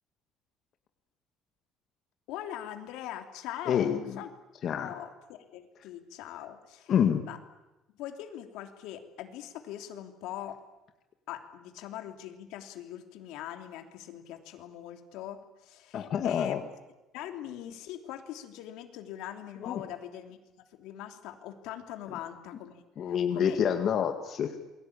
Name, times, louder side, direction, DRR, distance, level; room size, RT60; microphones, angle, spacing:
voice 1, 2.3-4.3 4.7-6.9 7.2-7.4 7.9-10.6 11.3-16.6 17.1-20.4 20.7-23.6, left 11 dB, 80° left, 6 dB, 3.1 m, -42 dB
voice 2, 3.7-4.2 4.6-4.9 6.9-7.2 15.9-16.6 19.6-19.8 23.0-24.5, left 8 dB, 40° left, 6 dB, 1.9 m, -27 dB
28.5 x 22.0 x 8.8 m, 1.0 s
cardioid pair, 165°, 0 cm